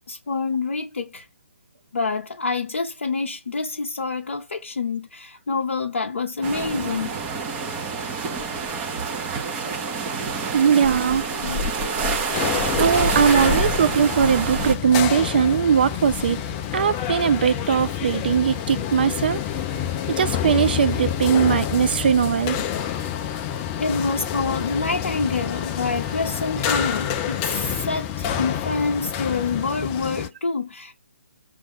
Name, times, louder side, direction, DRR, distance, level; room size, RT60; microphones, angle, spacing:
voice 1, 0.1-1.3 1.9-7.2 11.4-11.6 23.8-30.9, left 4 dB, 60° left, 0.6 m, -27 dB
sound 1, 6.4-14.8, right 3 dB, 20° right, 0.8 m, -26 dB
voice 2, 10.5-11.3 12.7-16.4 16.7-19.4 20.2-22.6, right 7 dB, 45° right, 0.5 m, -20 dB
sound 2, 12.3-30.3, left 9 dB, 20° left, 0.3 m, -28 dB
5.0 x 2.5 x 3.4 m
figure-of-eight pair, 140°, 7 cm